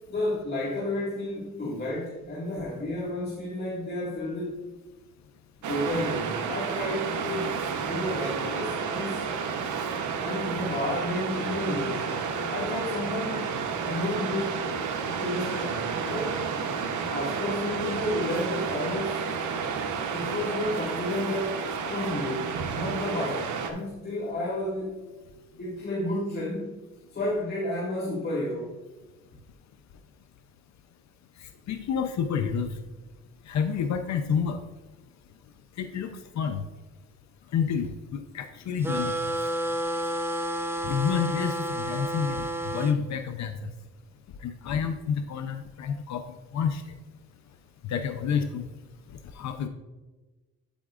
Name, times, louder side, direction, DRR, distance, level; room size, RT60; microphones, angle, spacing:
voice 1, 0.1-4.6 5.7-9.2 10.2-12.1 12.5-13.5 13.8-14.6 15.0-16.4 17.1-19.2 20.1-25.0 25.6-26.8 27.1-28.8, left 1 dB, 35° left, -6 dB, 1.9 m, -31 dB
Waves surf, 5.6-23.7, right 6 dB, 75° right, 1.0 m, -31 dB
voice 2, 31.7-32.7 33.5-34.6 35.8-36.1 36.4-36.7 37.5-39.1 40.8-43.7 44.4-46.2 46.5-46.8 47.9-48.7 49.3-49.7, left 7 dB, 65° left, 7 dB, 0.7 m, -29 dB
sound 1, 38.8-43.0, right 1 dB, 10° right, 0.6 m, -30 dB
8.7 x 8.6 x 2.5 m, 1.2 s
cardioid pair, 90°, 30 cm